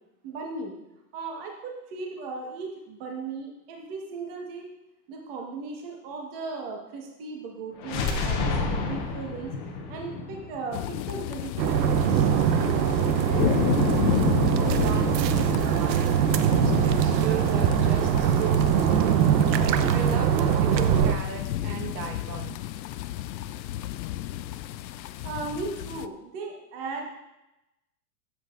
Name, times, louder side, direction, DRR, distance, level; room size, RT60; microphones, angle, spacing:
voice 1, 0.2-0.7 1.1-4.7 5.1-9.5 9.9-13.5 25.0-27.1, right 4 dB, 35° right, 0 dB, 1.5 m, -37 dB
sound 1, 7.8-11.7, left 4 dB, 30° left, 0.9 m, -30 dB
sound 2, 10.7-26.1, left 14 dB, 90° left, 0.6 m, -32 dB
sound 3, 11.6-21.1, right 8 dB, 90° right, 0.8 m, -22 dB
voice 2, 14.5-19.4 19.9-22.6, right 6 dB, 70° right, 2 dB, 1.5 m, -36 dB
13.0 x 8.1 x 2.5 m, 0.93 s
supercardioid pair, 175°, 50 cm